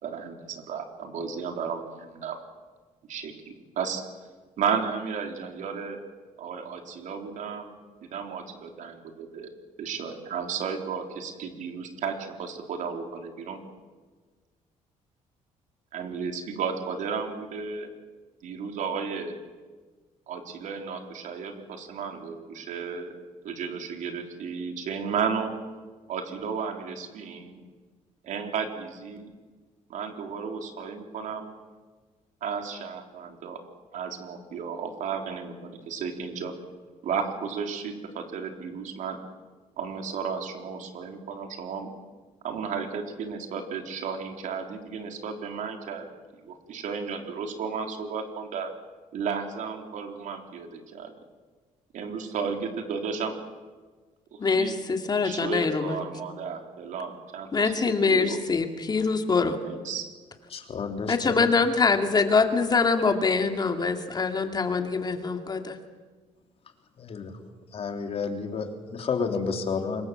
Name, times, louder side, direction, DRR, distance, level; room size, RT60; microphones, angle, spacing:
voice 1, 0.0-2.4 3.1-4.0 4.6-6.0 6.4-7.7 8.0-9.5 9.8-13.6 15.9-17.9 18.4-19.4 20.3-23.2 23.4-25.6 26.1-27.6 28.2-29.3 29.9-31.5 32.4-33.6 33.9-36.5 37.0-39.2 39.8-41.9 42.4-46.1 46.4-48.7 49.1-51.1 51.9-53.4 54.3-54.7 55.2-58.4 59.6-60.1, right 6 dB, 70° right, 4 dB, 3.8 m, -33 dB
voice 2, 54.4-56.0 57.5-59.6 61.1-65.8, left 4 dB, 30° left, 6 dB, 2.4 m, -24 dB
voice 3, 60.5-61.5 67.0-67.3 67.7-70.1, left 5 dB, 45° left, 4 dB, 3.3 m, -31 dB
25.5 x 22.5 x 7.7 m, 1.4 s
cardioid pair, 105°, 14 cm